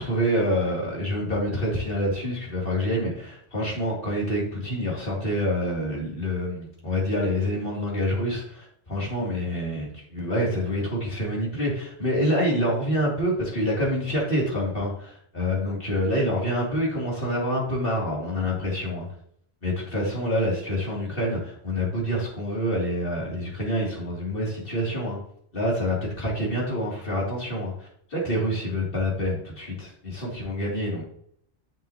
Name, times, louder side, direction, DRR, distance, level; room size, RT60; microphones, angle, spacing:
voice 1, 0.0-19.1 19.6-25.2 25.5-31.0, equal, 50° left, -4 dB, 3.2 m, -27 dB
10.0 x 7.0 x 3.0 m, 0.66 s
omnidirectional pair, 1.2 m